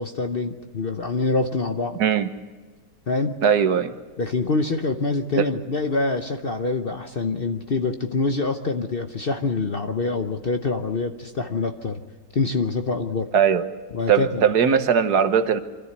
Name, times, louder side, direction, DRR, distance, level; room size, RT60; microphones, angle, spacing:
voice 1, 0.0-2.0 3.1-3.4 4.2-12.0 12.3-13.3 13.9-14.4, left 3 dB, 45° left, 0.9 m, -25 dB
voice 2, 2.0-2.3 3.4-3.9 5.4-5.5 13.3-13.6 14.1-15.6, right 7 dB, 70° right, 1.6 m, -19 dB
25.0 x 13.5 x 8.1 m
omnidirectional pair, 1.8 m